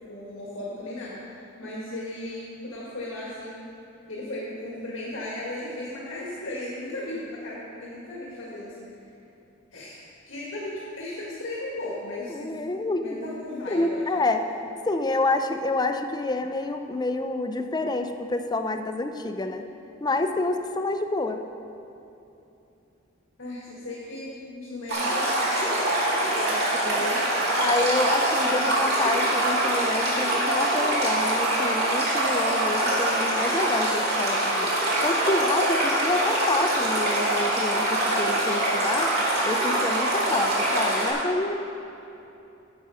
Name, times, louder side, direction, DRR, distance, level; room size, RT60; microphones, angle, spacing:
voice 1, 0.0-3.6 4.1-9.1 9.7-10.0 10.3-14.4 23.4-25.3 26.3-27.3 28.3-28.8, left 1 dB, 75° left, -6 dB, 1.7 m, -36 dB
voice 2, 12.3-13.0 13.7-14.4 14.8-19.6 20.0-21.4 26.8-27.1 27.6-34.7 35.0-39.1 39.4-41.6, left 2 dB, 20° left, 6 dB, 0.5 m, -28 dB
Stream, 24.9-41.1, right 1 dB, 55° right, 2.5 m, -24 dB
9.7 x 7.3 x 5.6 m, 2.8 s
head